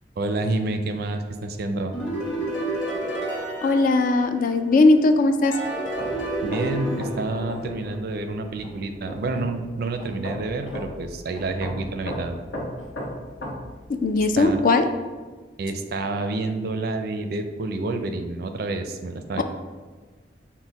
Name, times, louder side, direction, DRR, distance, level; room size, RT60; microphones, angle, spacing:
voice 1, 0.2-1.9 6.4-12.3 14.4-14.6 15.6-19.4, right 2 dB, 60° right, 7 dB, 0.4 m, -28 dB
sound 1, 1.9-4.8 5.4-8.3, right 1 dB, 70° left, 1.3 m, -30 dB
voice 2, 3.6-5.5 14.0-14.8 19.4-19.5, left 3 dB, 50° left, 7 dB, 0.3 m, -18 dB
sound 2, 5.9-14.6, equal, 85° left, 0.9 m, -36 dB
6.2 x 2.1 x 4.0 m, 1.4 s
head